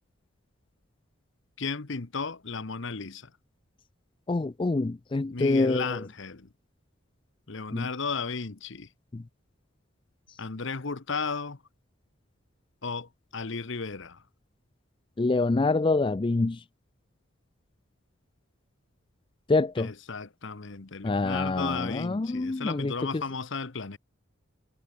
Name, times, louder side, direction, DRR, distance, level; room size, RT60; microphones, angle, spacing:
voice 1, 1.6-3.3 5.3-6.5 7.5-8.9 10.4-11.6 12.8-14.2 19.8-24.0, left 4 dB, 60° left, 1.0 m, -34 dB
voice 2, 4.3-6.0 7.7-7.9 9.1-9.2 15.2-16.6 19.5-19.9 21.0-22.9, left 3 dB, 25° left, 0.4 m, -26 dB
head